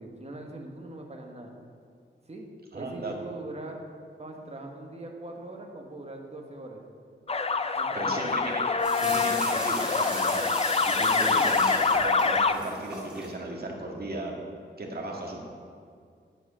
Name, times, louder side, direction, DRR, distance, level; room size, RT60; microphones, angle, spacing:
voice 1, 0.0-1.5 2.3-2.5 2.7-3.8 4.2-6.8 7.7-8.3 11.1-11.6, right 2 dB, 35° right, 1 dB, 1.5 m, -41 dB
voice 2, 2.7-3.1 7.9-10.5 10.8-14.3 14.8-15.4, right 2 dB, 55° right, -1 dB, 1.9 m, -36 dB
sound 1, 7.3-12.5, left 4 dB, 30° left, 0.5 m, -25 dB
sound 2, 8.8-13.3, equal, 5° right, 2.4 m, -37 dB
9.2 x 8.0 x 6.2 m, 2.2 s
wide cardioid pair, 100°, 20 cm